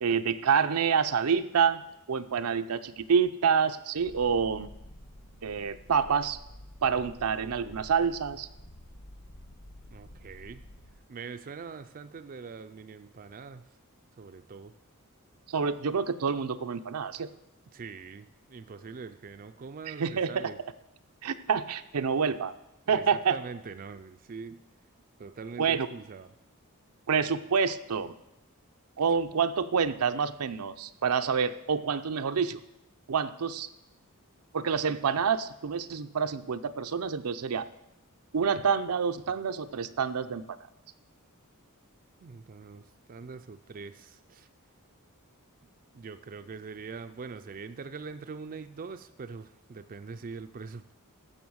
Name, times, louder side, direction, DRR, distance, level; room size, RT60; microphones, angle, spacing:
voice 1, 0.0-1.8 2.1-4.7 5.4-6.4 6.8-8.5 15.5-17.3 19.9-20.5 21.2-22.5 22.9-23.4 25.6-25.9 27.1-28.1 29.0-32.6 33.1-33.7 34.5-37.7 38.3-40.4, right 6 dB, 80° right, 10 dB, 0.6 m, -27 dB
Purr, 4.0-11.0, left 1 dB, 75° left, 1.2 m, -49 dB
voice 2, 9.9-10.6 11.1-13.6 14.2-14.7 17.7-20.6 22.9-24.6 25.2-26.3 42.2-44.5 45.9-50.9, right 5 dB, 40° right, 9 dB, 0.4 m, -43 dB
14.5 x 5.6 x 6.2 m, 0.88 s
head